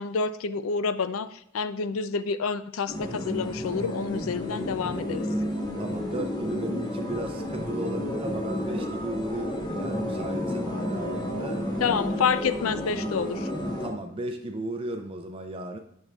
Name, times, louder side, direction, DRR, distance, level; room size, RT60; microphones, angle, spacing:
voice 1, 0.0-5.3 11.8-13.5, left 5 dB, 90° left, 13 dB, 0.4 m, -28 dB
sound 1, 2.9-13.9, left 1 dB, 20° left, 1.1 m, -31 dB
voice 2, 5.8-11.6 12.1-12.3 13.8-15.8, right 2 dB, 25° right, 5 dB, 0.4 m, -35 dB
8.7 x 6.1 x 2.3 m, 0.76 s
head